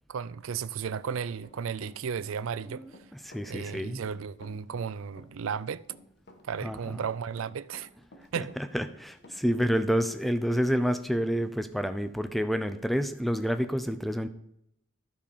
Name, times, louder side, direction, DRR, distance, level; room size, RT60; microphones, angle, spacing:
voice 1, 0.1-2.8 3.4-5.8 6.5-7.9 8.3-8.6, right 6 dB, 75° right, 0.4 m, -34 dB
Run, 1.0-10.2 10.5-10.6 11.0-11.1, left 1 dB, 50° left, 1.4 m, -53 dB
voice 2, 2.7-4.0 6.6-7.0 8.4-14.3, equal, ahead, 0.6 m, -29 dB
12.0 x 5.5 x 6.8 m
head